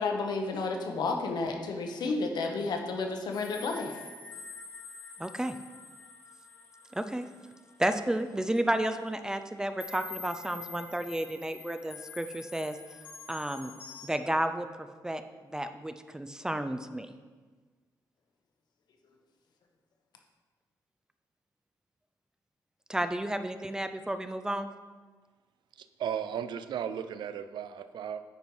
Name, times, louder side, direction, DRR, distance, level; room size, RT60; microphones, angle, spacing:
voice 1, 0.0-4.0, left 3 dB, 65° left, 3 dB, 1.0 m, -31 dB
sound 1, 3.3-8.4 8.9-9.1 9.8-14.1, left 4 dB, 25° left, 1.2 m, -47 dB
voice 2, 5.2-5.5 6.9-7.3 7.8-12.8 13.3-13.7 14.0-15.2 15.5-17.1 22.9-24.7, right 1 dB, 10° right, 9 dB, 0.4 m, -32 dB
voice 3, 25.8-28.2, right 8 dB, 85° right, 11 dB, 0.5 m, -35 dB
9.3 x 4.6 x 5.4 m, 1.4 s
wide cardioid pair, 155°, 8 cm